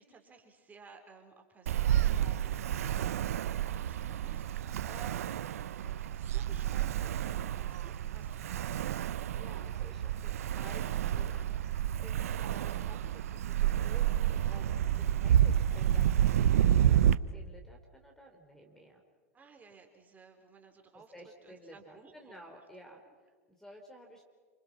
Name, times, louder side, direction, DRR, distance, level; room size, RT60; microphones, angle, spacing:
voice 1, 0.0-5.4 6.0-9.2 19.3-21.1 21.4-22.6, right 5 dB, 20° right, 4 dB, 4.0 m, -56 dB
Ocean, 1.7-17.1, right 10 dB, 70° right, 0.8 m, -29 dB
voice 2, 9.3-14.7 15.0-19.0 21.1-24.2, equal, 5° left, 3 dB, 3.4 m, -54 dB
28.5 x 26.0 x 6.0 m, 1.5 s
hypercardioid pair, 95°, 8 cm